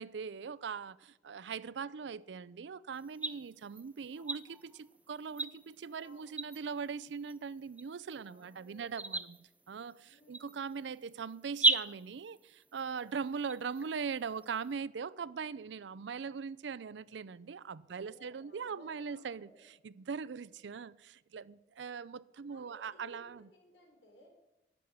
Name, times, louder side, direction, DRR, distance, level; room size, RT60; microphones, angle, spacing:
voice 1, 0.0-9.4 9.7-19.5 19.8-23.4, right 6 dB, 80° right, 0.4 m, -41 dB
sound 1, 2.9-14.7, right 2 dB, 10° right, 0.4 m, -38 dB
voice 2, 8.2-9.2 10.0-10.6 12.9-13.2 17.9-19.7 22.5-24.3, left 1 dB, 75° left, 3.9 m, -60 dB
12.0 x 6.3 x 9.6 m
head